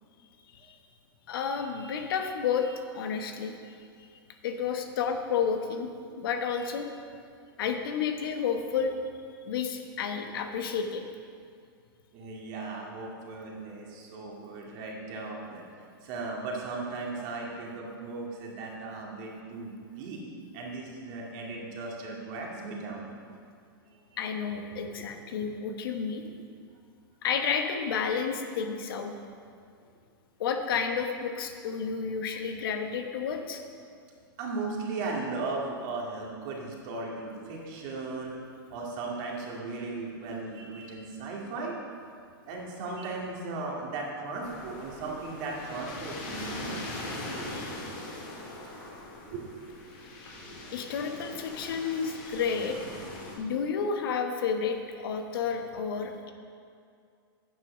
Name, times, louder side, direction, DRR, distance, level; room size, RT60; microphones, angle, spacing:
voice 1, 1.3-3.6 4.4-5.9 6.2-6.9 7.6-8.9 9.4-11.0 24.2-26.2 27.2-29.1 30.4-33.6 47.6-47.7 50.7-52.8 53.4-56.3, left 6 dB, 70° left, 5 dB, 1.1 m, -31 dB
voice 2, 12.1-15.6 16.0-20.2 20.5-23.1 25.0-25.1 26.3-26.4 34.4-38.4 38.7-41.8 42.5-46.9 49.3-49.5, right 3 dB, 50° right, -2 dB, 2.3 m, -37 dB
sound 1, 44.4-53.4, left 2 dB, 50° left, 2.5 m, -41 dB
9.2 x 6.2 x 6.0 m, 2.3 s
hypercardioid pair, 125°, 12 cm